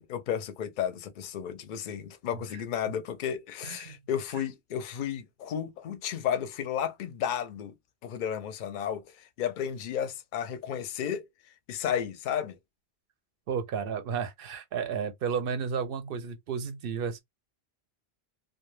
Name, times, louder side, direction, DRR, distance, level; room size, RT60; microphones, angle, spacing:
voice 1, 0.0-7.7 8.0-11.3 11.7-12.6, left 9 dB, 60° left, 0.6 m, -33 dB
voice 2, 3.6-3.9 13.5-17.2, right 6 dB, 65° right, 0.7 m, -32 dB
2.2 x 2.2 x 3.1 m
omnidirectional pair, 1.1 m